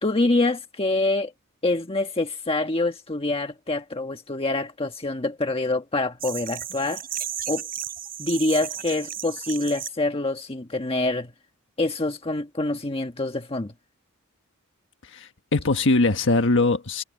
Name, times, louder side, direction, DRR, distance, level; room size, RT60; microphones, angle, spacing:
voice 1, 0.0-1.3 1.6-7.1 7.5-7.7 8.2-11.3 11.8-13.7, left 2 dB, 25° left, 1.4 m, -26 dB
sound 1, 6.2-9.9, right 10 dB, 45° right, 4.4 m, -34 dB
voice 2, 15.0-17.0, left 3 dB, 60° left, 1.4 m, -21 dB
head